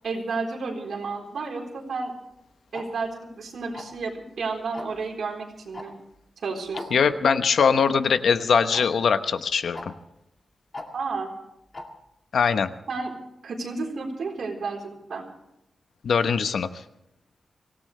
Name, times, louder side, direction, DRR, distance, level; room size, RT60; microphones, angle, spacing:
voice 1, 0.0-2.1 2.7-5.9 6.4-7.0 10.9-11.3 12.9-13.1 13.4-15.3, right 4 dB, 75° right, 1 dB, 4.1 m, -31 dB
Tick-tock, 2.7-2.8 3.7-4.0 4.7-5.0 5.7-5.8 6.1-6.2 6.7-6.9 7.7-7.8 8.7-8.8 9.7-9.8 10.7-10.9 11.7-11.8, left 2 dB, 30° left, 2.3 m, -36 dB
voice 2, 6.9-9.9 12.3-12.7 16.0-16.8, left 6 dB, 85° left, 10 dB, 1.0 m, -22 dB
25.0 x 17.0 x 3.3 m, 0.84 s
wide cardioid pair, 155°, 0 cm